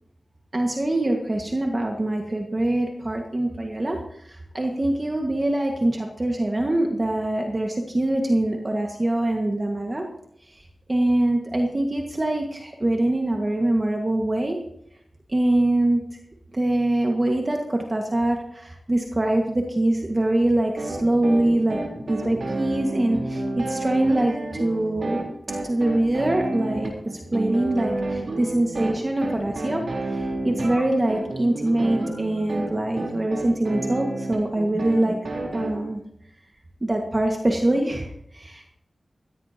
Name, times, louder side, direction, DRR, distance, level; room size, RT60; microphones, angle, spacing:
voice 1, 0.5-10.0 10.4-14.6 15.3-16.0 16.5-21.8 22.1-25.2 25.6-29.8 30.1-35.2 35.5-36.0 36.8-38.7, right 1 dB, 30° right, 1 dB, 1.8 m, -24 dB
sound 1, 20.8-35.7, right 2 dB, 85° right, 3.8 m, -30 dB
16.5 x 16.0 x 2.9 m, 0.74 s
wide cardioid pair, 95°, 0 cm